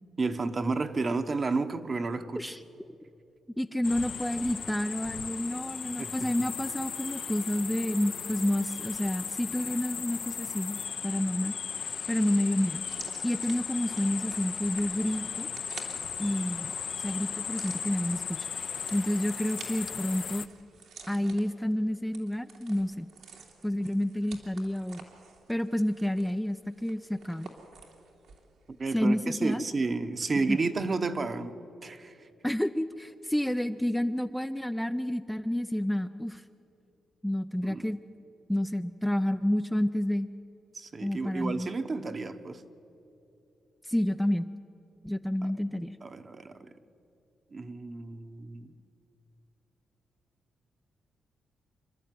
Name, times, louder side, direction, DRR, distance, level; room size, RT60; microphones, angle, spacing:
voice 1, 0.2-2.5 6.0-6.1 28.8-31.6 31.8-32.3 37.6-37.9 40.7-42.6 46.0-46.7 47.5-48.7, right 3 dB, 35° right, 9 dB, 1.1 m, -31 dB
voice 2, 3.6-11.5 12.1-12.8 13.2-15.5 16.2-16.7 17.0-18.5 18.9-20.4 21.1-23.1 23.6-25.1 25.5-27.5 28.9-29.6 30.5-30.6 32.4-36.4 37.2-38.0 38.5-40.3 41.0-41.7 43.8-44.5 45.0-46.0, left 1 dB, 5° left, 8 dB, 0.5 m, -29 dB
sound 1, 3.8-20.5, left 7 dB, 55° left, 0.7 m, -37 dB
sound 2, 12.8-28.5 28.8-28.9, right 5 dB, 75° right, 2.8 m, -51 dB
27.0 x 12.0 x 9.4 m, 2.8 s
cardioid pair, 100°, 0 cm